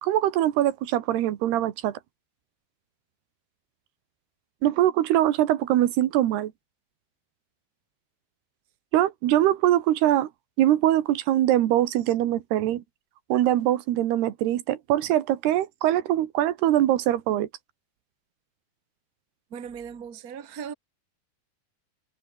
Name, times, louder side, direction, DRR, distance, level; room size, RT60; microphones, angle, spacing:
voice 1, 0.0-2.0 4.6-6.5 8.9-10.3 10.6-12.8 13.3-17.5, right 13 dB, 90° right, 3.6 m, -23 dB
voice 2, 19.5-20.7, right 7 dB, 30° right, 1.8 m, -38 dB
omnidirectional pair, 4.5 m